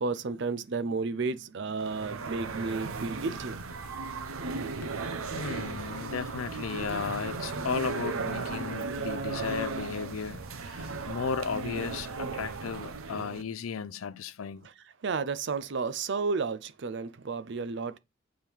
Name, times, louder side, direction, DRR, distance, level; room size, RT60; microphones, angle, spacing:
voice 1, 0.0-3.7 14.6-14.7 15.0-18.0, right 4 dB, 55° right, 0.5 m, -32 dB
sound 1, 1.8-13.4, right 4 dB, 90° right, 0.8 m, -36 dB
voice 2, 5.3-14.7, left 6 dB, 80° left, 0.4 m, -35 dB
7.3 x 3.4 x 4.5 m
head